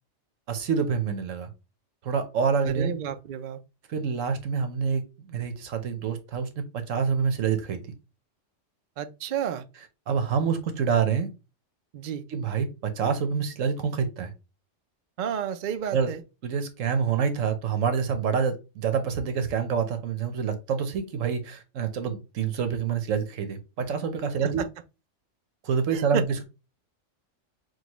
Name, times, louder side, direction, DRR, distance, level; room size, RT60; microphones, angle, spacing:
voice 1, 0.5-1.5 2.0-2.9 3.9-7.8 10.1-11.3 12.3-14.3 15.9-16.1 16.4-24.6 25.6-26.4, right 6 dB, 80° right, 1.2 m, -27 dB
voice 2, 2.7-3.6 9.0-9.7 11.9-12.2 15.2-16.2 24.4-24.7 25.9-26.2, right 8 dB, 55° right, 0.5 m, -31 dB
6.3 x 2.3 x 3.0 m
omnidirectional pair, 1.3 m